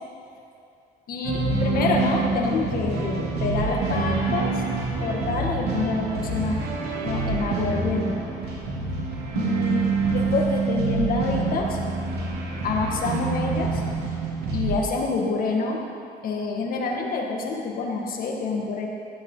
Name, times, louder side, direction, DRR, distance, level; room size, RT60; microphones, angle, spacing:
voice 1, 1.1-4.6 5.0-6.6 7.0-8.2 9.3-9.8 10.1-11.8 12.6-13.8 14.5-15.8 16.2-18.9, left 3 dB, 60° left, 0 dB, 2.0 m, -27 dB
sound 1, 1.2-14.8, right 3 dB, 70° right, 2.9 m, -26 dB
15.0 x 10.5 x 4.0 m, 2.5 s
cardioid pair, 110°, 17 cm